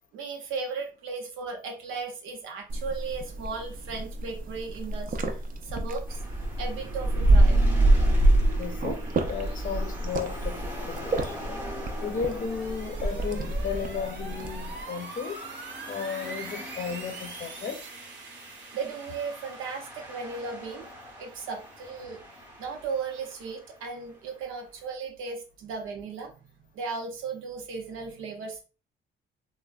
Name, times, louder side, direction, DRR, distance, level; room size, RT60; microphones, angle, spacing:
voice 1, 0.1-5.2 5.6-6.2 6.6-7.6 18.7-20.9 21.2-22.2 22.6-26.3 26.7-28.6, right 4 dB, 90° right, 0.7 m, -36 dB
sound 1, 2.7-14.8, right 1 dB, 45° right, 0.5 m, -26 dB
sound 2, 6.1-24.5, left 1 dB, 10° right, 0.7 m, -43 dB
sound 3, 7.5-22.9, right 3 dB, 65° right, 0.9 m, -45 dB
voice 2, 8.6-9.0 9.3-11.4 12.0-15.4 15.9-17.8, left 6 dB, 45° left, 0.6 m, -34 dB
3.3 x 2.1 x 2.3 m
cardioid pair, 90°, 20 cm